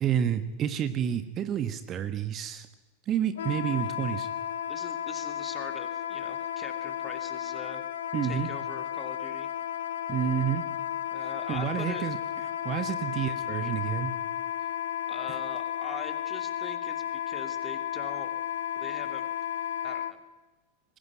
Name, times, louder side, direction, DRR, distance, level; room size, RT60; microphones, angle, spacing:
voice 1, 0.0-2.7 3.1-4.3 8.1-8.5 10.1-10.6 11.5-12.2 12.6-14.1, right 9 dB, 30° right, 11 dB, 1.3 m, -29 dB
Wind instrument woodwind instrument, 3.4-20.1, left 10 dB, 65° left, 1.6 m, -33 dB
voice 2, 4.7-7.8 8.2-9.5 11.1-12.1 15.1-18.3 18.8-19.3 19.8-20.2, left 4 dB, 15° left, 8 dB, 2.7 m, -42 dB
22.0 x 18.5 x 9.5 m, 1.2 s
figure-of-eight pair, 90°, 0 cm